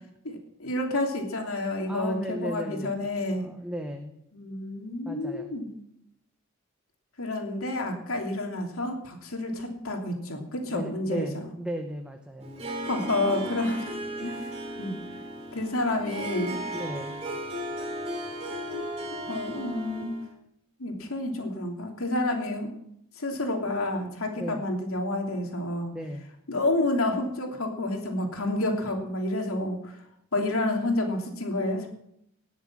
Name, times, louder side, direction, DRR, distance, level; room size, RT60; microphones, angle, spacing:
voice 1, 0.2-3.5 4.3-5.7 7.2-11.5 12.8-13.9 14.2-14.5 14.8-14.9 15.5-16.6 18.7-18.8 19.2-20.1 20.8-22.7 23.1-25.9 26.5-30.0 30.3-31.9, left 2 dB, 80° left, 2 dB, 3.0 m, -29 dB
voice 2, 1.9-3.1 3.4-4.2 5.0-5.5 10.7-12.6 16.7-17.2 24.3-24.6 25.9-26.3, equal, 5° right, 4 dB, 0.8 m, -36 dB
Harp, 12.4-20.3, right 1 dB, 30° right, 3.0 m, -36 dB
19.0 x 7.4 x 7.4 m, 0.77 s
head